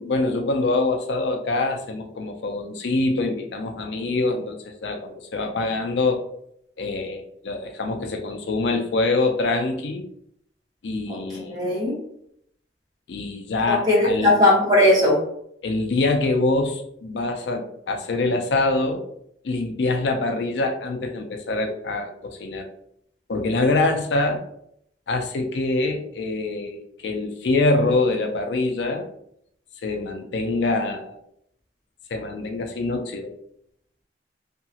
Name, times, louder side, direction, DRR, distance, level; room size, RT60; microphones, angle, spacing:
voice 1, 0.0-6.3 6.8-10.0 10.8-11.6 13.1-14.3 15.6-19.1 19.4-22.7 23.3-24.4 25.1-29.1 29.8-31.2 32.1-33.3, left 2 dB, 75° left, 5 dB, 0.4 m, -24 dB
voice 2, 11.1-11.9 13.7-15.2, left 1 dB, 20° right, -6 dB, 1.1 m, -19 dB
2.8 x 2.4 x 2.7 m, 0.71 s
head